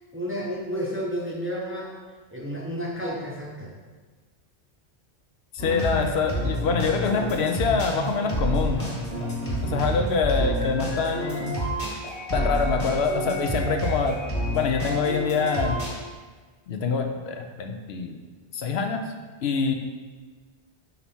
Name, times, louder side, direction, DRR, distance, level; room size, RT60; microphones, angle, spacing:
voice 1, 0.1-1.9 2.3-3.7, equal, 15° right, -3 dB, 0.6 m, -31 dB
voice 2, 5.5-8.9 9.6-11.6 12.3-14.2 14.5-15.8 16.7-18.2 18.5-19.0 19.4-19.7, left 5 dB, 75° left, 4 dB, 0.9 m, -25 dB
sound 1, 5.6-15.9, equal, 45° left, 1.7 m, -29 dB
5.4 x 4.5 x 4.2 m, 1.4 s
omnidirectional pair, 1.1 m